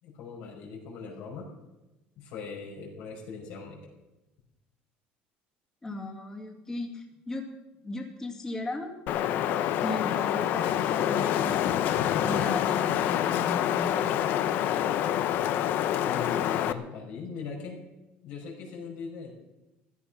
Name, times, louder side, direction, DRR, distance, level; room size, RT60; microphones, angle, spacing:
voice 1, 0.0-1.5 2.2-3.9 16.0-17.8 18.2-19.3, left 5 dB, 65° left, -1 dB, 5.4 m, -40 dB
voice 2, 5.8-7.4 7.8-8.9 9.8-14.1, left 2 dB, 15° left, 1 dB, 2.2 m, -36 dB
Wind, 9.1-16.7, left 11 dB, 50° left, 0.8 m, -27 dB
15.5 x 13.5 x 5.7 m, 0.99 s
cardioid pair, 165°, 4 cm